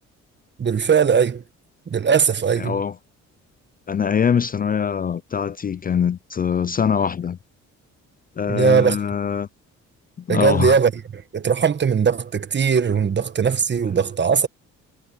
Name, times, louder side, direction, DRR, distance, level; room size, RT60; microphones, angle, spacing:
voice 1, 0.6-1.4 1.9-2.8 8.5-9.0 10.3-11.0 11.3-14.5, right 6 dB, 35° right, 1.3 m, -19 dB
voice 2, 2.6-2.9 3.9-7.4 8.4-9.5 10.3-10.7, left 7 dB, 30° left, 0.4 m, -23 dB
cardioid pair, 90°, 30 cm